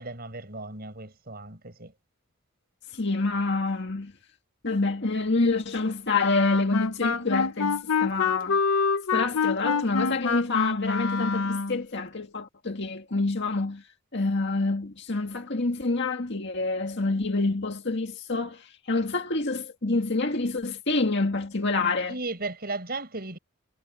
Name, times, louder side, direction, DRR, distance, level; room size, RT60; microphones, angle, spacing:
voice 1, 0.0-1.9 22.1-23.4, right 2 dB, 45° right, 6.4 m, -35 dB
voice 2, 3.0-4.1 4.6-8.6 9.1-13.8 14.1-22.1, left 3 dB, 55° left, 1.9 m, -27 dB
Wind instrument woodwind instrument, 6.2-11.8, left 5 dB, 85° left, 0.9 m, -26 dB
head